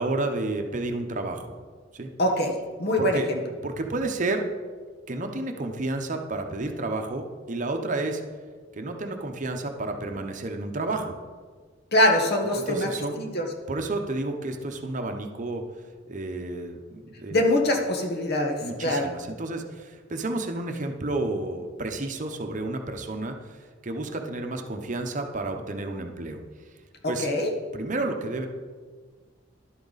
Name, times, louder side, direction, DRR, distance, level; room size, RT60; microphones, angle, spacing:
voice 1, 0.0-1.5 1.9-2.1 3.0-3.3 3.6-4.5 5.1-8.2 8.7-11.2 12.5-13.2 13.7-15.6 16.1-17.4 18.6-26.4 27.1-27.3 27.7-28.5, right 2 dB, 40° right, 4 dB, 0.8 m, -31 dB
voice 2, 2.2-2.5 2.8-3.4 11.9-12.9 13.2-13.4 17.3-19.1 27.0-27.5, left 1 dB, 55° left, 3 dB, 1.3 m, -23 dB
11.0 x 8.5 x 4.1 m, 1.5 s
head